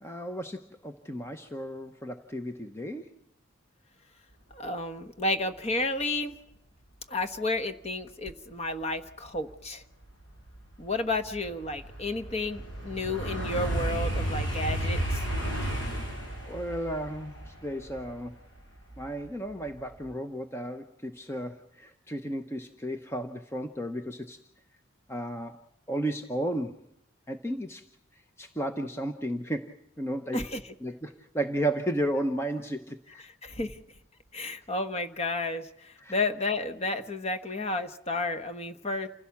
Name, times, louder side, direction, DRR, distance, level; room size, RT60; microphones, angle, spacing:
voice 1, 0.0-3.1 16.5-18.3 19.0-24.4 25.1-25.6 25.9-26.8 27.3-27.8 28.4-30.4 30.8-33.2 34.4-34.5 36.0-36.1, right 1 dB, 10° left, 6 dB, 0.9 m, -33 dB
voice 2, 4.5-6.3 7.1-9.8 10.8-15.2 30.3-30.7 33.2-33.8 34.3-39.1, left 2 dB, 30° left, 7 dB, 1.3 m, -32 dB
sound 1, 9.6-9.7 10.2-19.3 19.7-20.1, right 1 dB, 60° left, 7.5 m, -33 dB
28.0 x 16.0 x 7.2 m, 0.81 s
head